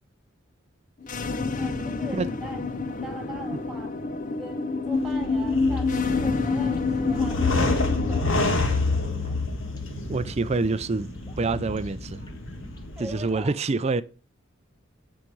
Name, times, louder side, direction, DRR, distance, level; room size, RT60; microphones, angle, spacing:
sound 1, 1.0-8.2, left 4 dB, 40° left, 0.6 m, -27 dB
voice 1, 1.6-2.6 3.0-4.0 4.3-8.5 13.0-13.5, right 1 dB, ahead, 2.0 m, -41 dB
sound 2, 4.9-13.4, left 3 dB, 65° left, 1.7 m, -29 dB
sound 3, 5.3-12.9, left 1 dB, 20° left, 1.5 m, -44 dB
voice 2, 10.1-11.1 11.4-12.2 13.0-14.0, right 3 dB, 30° right, 0.4 m, -26 dB
9.0 x 4.9 x 5.3 m
head